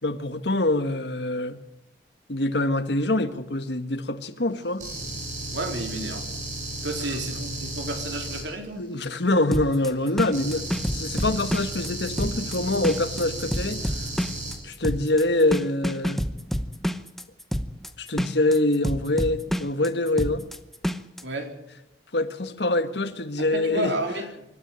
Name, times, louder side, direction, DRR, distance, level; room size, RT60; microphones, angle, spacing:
voice 1, 0.0-1.6 2.3-4.8 8.8-10.7 10.9-13.8 14.6-16.2 18.0-20.4 22.1-23.9, left 2 dB, 70° left, 9 dB, 1.6 m, -25 dB
sound 1, 4.8-8.4 10.3-14.5, right 2 dB, 40° right, 7.1 m, -34 dB
voice 2, 5.5-6.3 6.8-8.9 21.2-21.5 23.4-24.5, right 1 dB, 85° right, 4 dB, 3.9 m, -31 dB
sound 2, 9.5-21.2, equal, ahead, 0.8 m, -29 dB
25.0 x 12.5 x 8.9 m, 0.85 s
head